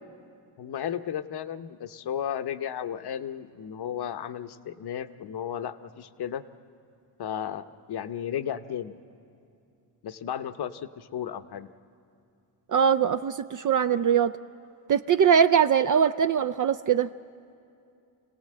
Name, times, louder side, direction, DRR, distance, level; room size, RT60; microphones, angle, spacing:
voice 1, 0.6-6.4 7.2-8.9 10.0-11.7, left 9 dB, 55° left, 11 dB, 0.9 m, -34 dB
voice 2, 12.7-14.3 14.9-17.1, right 7 dB, 45° right, 11 dB, 0.4 m, -22 dB
26.0 x 17.5 x 7.6 m, 2.6 s
cardioid pair, 90°, 46 cm